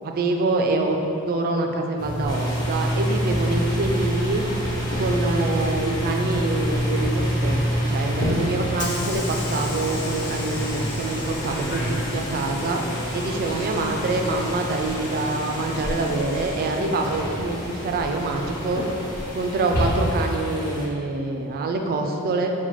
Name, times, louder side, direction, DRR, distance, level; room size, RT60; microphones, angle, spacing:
voice 1, 0.0-1.0 1.3-4.4 5.0-12.8 13.1-18.8 19.3-22.5, right 2 dB, 45° right, 3 dB, 0.3 m, -25 dB
sound 1, 2.0-20.4, equal, 45° left, 1.1 m, -28 dB
sound 2, 2.3-20.9, equal, 20° left, 0.5 m, -34 dB
Hiss / Sliding door, 8.1-18.9, left 3 dB, 80° left, 0.6 m, -39 dB
5.7 x 2.2 x 3.0 m, 2.8 s
head